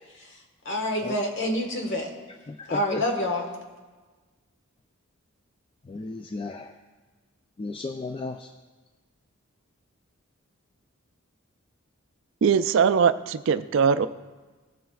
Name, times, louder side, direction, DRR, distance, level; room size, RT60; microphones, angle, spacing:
voice 1, 0.6-2.1 2.7-3.5, left 1 dB, 60° left, 1.4 m, -27 dB
voice 2, 2.5-3.0 5.9-6.7 7.6-8.5, left 3 dB, 25° left, 0.3 m, -34 dB
voice 3, 12.4-14.1, right 6 dB, 60° right, 0.4 m, -21 dB
16.5 x 7.4 x 2.4 m
head